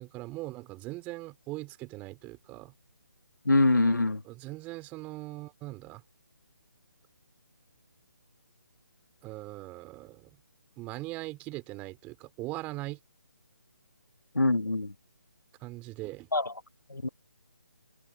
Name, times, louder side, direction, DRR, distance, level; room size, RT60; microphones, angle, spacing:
voice 1, 0.0-2.7 4.3-6.0 9.2-10.3 10.8-13.0 15.6-16.3, right 20 dB, 15° right, 4.7 m, -40 dB
voice 2, 3.4-4.2 14.3-14.9 16.3-16.5 16.9-17.1, left 2 dB, 75° left, 1.7 m, -24 dB
figure-of-eight pair, 145°, 10 cm